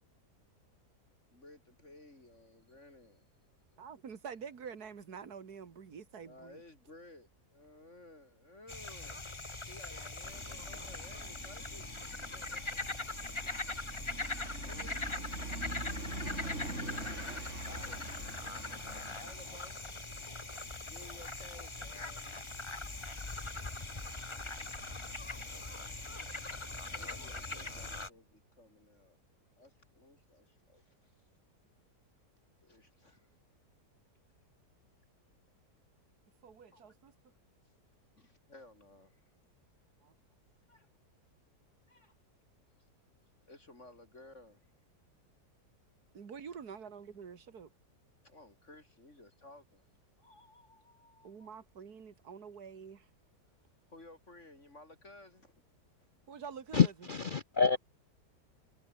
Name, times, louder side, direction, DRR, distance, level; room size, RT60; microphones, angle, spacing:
voice 1, 1.3-3.2 6.2-11.9 12.3-12.8 13.4-13.5 14.2-15.2 17.7-18.2 19.2-19.8 20.8-22.4 26.9-29.2 29.6-31.1 32.6-33.3 36.7-37.0 38.2-39.2 40.7-40.9 41.9-42.1 43.5-44.7 48.2-49.9 50.2-51.6 53.9-55.5 57.7-57.8, left 2 dB, 45° left, 4.6 m, -56 dB
voice 2, 3.8-6.6 36.4-37.1 40.0-40.1 46.1-47.7 51.2-53.1 56.3-56.9, right 6 dB, 65° right, 2.5 m, -47 dB
sound 1, 8.7-28.1, left 2 dB, 20° left, 1.4 m, -41 dB
sound 2, 10.2-28.1, right 2 dB, 45° right, 6.0 m, -47 dB
voice 3, 56.7-57.8, left 6 dB, 60° left, 0.5 m, -27 dB
omnidirectional pair, 1.8 m